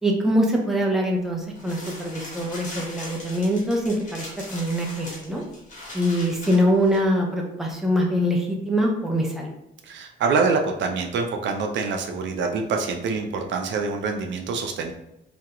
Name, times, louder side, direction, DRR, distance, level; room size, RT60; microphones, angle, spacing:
voice 1, 0.0-5.4 5.9-9.5, equal, ahead, 0 dB, 0.5 m, -23 dB
sound 1, 1.6-7.0, left 1 dB, 40° left, 1.0 m, -40 dB
voice 2, 9.8-14.9, right 4 dB, 65° right, 3 dB, 0.4 m, -25 dB
2.3 x 2.0 x 2.8 m, 0.86 s
cardioid pair, 90°, 20 cm